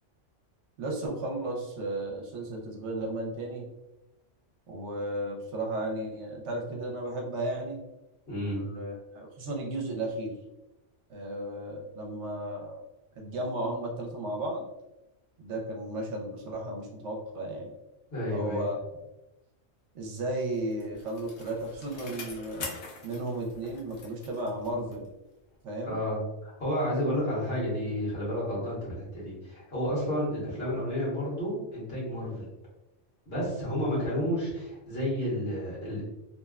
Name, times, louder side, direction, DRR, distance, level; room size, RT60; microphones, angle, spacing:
voice 1, 0.8-3.7 4.7-7.8 8.5-10.3 11.1-12.8 13.2-14.6 15.4-17.7 18.3-18.8 19.9-22.7 23.0-25.1 25.6-26.0, right 1 dB, 75° right, 0 dB, 0.9 m, -34 dB
voice 2, 8.3-8.7 18.1-18.6 25.8-32.4 33.3-36.0, equal, 55° left, -7 dB, 1.4 m, -31 dB
Bicycle, 20.3-25.2 25.5-25.6, left 4 dB, 70° left, 0.9 m, -44 dB
2.8 x 2.1 x 2.3 m, 0.96 s
omnidirectional pair, 1.2 m